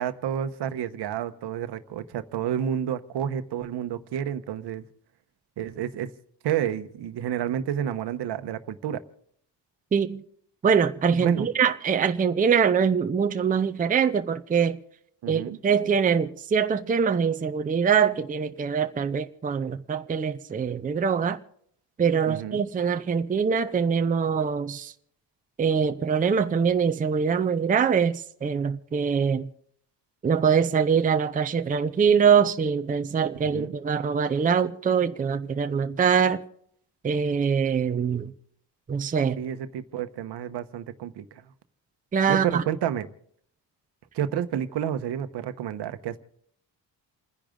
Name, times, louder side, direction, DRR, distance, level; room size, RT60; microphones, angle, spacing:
voice 1, 0.0-4.8 5.6-6.1 6.4-9.0 11.2-11.5 15.2-15.6 22.3-22.6 33.4-33.7 39.4-41.2 42.3-43.1 44.1-46.2, right 9 dB, 70° right, 1.1 m, -30 dB
voice 2, 9.9-10.2 10.6-14.8 15.3-21.4 22.0-24.9 25.6-29.5 30.2-36.4 37.0-38.3 38.9-39.4 42.1-42.6, right 6 dB, 20° right, 0.6 m, -23 dB
29.5 x 10.5 x 3.8 m
cardioid pair, 150°, 42 cm